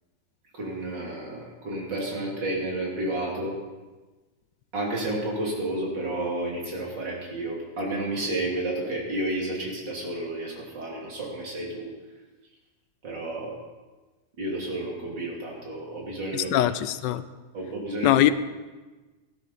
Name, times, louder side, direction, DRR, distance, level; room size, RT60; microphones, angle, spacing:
voice 1, 0.5-3.6 4.7-11.9 13.0-13.6 14.4-16.6 17.5-18.2, right 1 dB, 90° right, -3 dB, 3.5 m, -31 dB
voice 2, 16.3-17.2 18.0-18.3, left 13 dB, 85° left, 14 dB, 1.3 m, -22 dB
15.0 x 12.5 x 4.1 m, 1.2 s
omnidirectional pair, 1.9 m